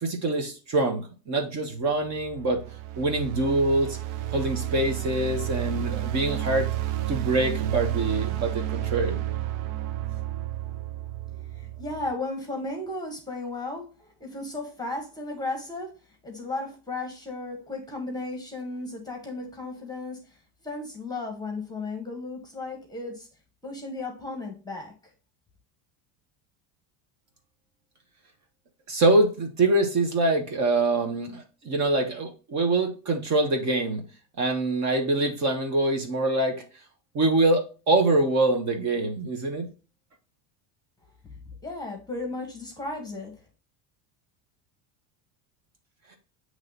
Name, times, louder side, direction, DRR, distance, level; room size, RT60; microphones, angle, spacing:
voice 1, 0.0-2.6 3.0-4.0 4.3-6.7 7.1-9.2 28.9-34.0 34.4-36.6 37.1-39.7, right 2 dB, 40° right, 1.2 m, -24 dB
sound 1, 1.9-12.1, right 14 dB, 75° right, 0.7 m, -31 dB
voice 2, 11.3-23.3 23.6-24.9 41.6-43.3, left 2 dB, 10° left, 1.2 m, -35 dB
7.4 x 3.2 x 4.0 m
cardioid pair, 150°, 43 cm